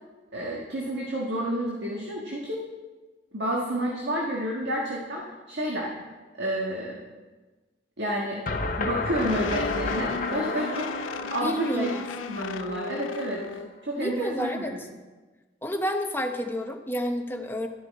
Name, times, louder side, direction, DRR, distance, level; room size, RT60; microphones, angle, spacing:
voice 1, 0.3-2.6 3.3-5.9 6.4-7.0 8.0-8.4 8.8-10.9 11.3-11.9 12.3-13.4 13.8-14.6, right 1 dB, 65° right, -3 dB, 1.6 m, -30 dB
sound 1, 8.5-13.4, left 2 dB, 45° left, 0.7 m, -32 dB
sound 2, 9.2-13.7, left 5 dB, 85° left, 0.4 m, -36 dB
voice 2, 11.4-12.0 14.0-14.9 15.6-17.7, equal, 10° left, 4 dB, 0.8 m, -30 dB
12.5 x 10.5 x 4.2 m, 1.3 s
head